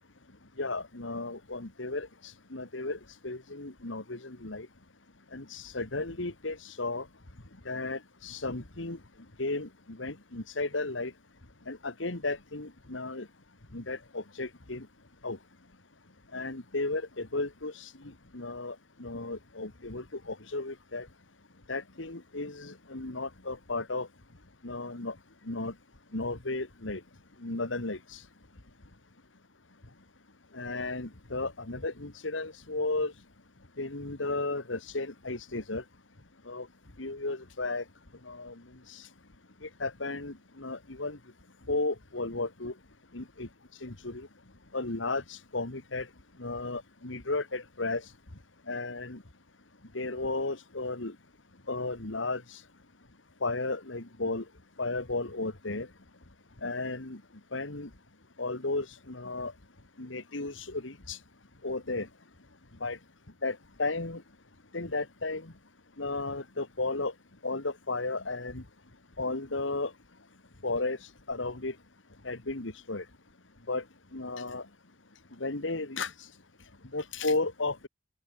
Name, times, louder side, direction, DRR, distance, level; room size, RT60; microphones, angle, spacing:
voice 1, 0.6-4.7 5.3-7.1 7.7-9.0 9.4-11.1 11.7-13.3 13.7-14.9 15.2-15.4 16.3-17.9 18.3-21.1 21.7-24.1 24.6-25.2 25.5-25.7 26.1-27.0 27.4-28.2 30.5-33.1 33.8-35.8 36.5-36.7 37.0-37.8 38.2-38.5 38.9-39.1 39.6-41.2 41.7-42.7 43.1-43.5 43.8-44.3 44.7-46.1 46.4-48.1 48.7-49.2 49.9-51.2 51.7-52.6 53.4-54.4 54.8-55.9 56.6-57.2 57.5-57.9 58.4-59.5 60.0-61.2 61.6-62.1 62.8-63.0 63.4-64.2 64.7-65.5 66.0-67.1 67.4-68.6 69.2-69.9 70.6-71.8 72.2-73.0 73.7-73.8 74.1-74.7 75.4-76.3 76.9-77.9, left 3 dB, 80° left, 2.2 m, -34 dB
open air
head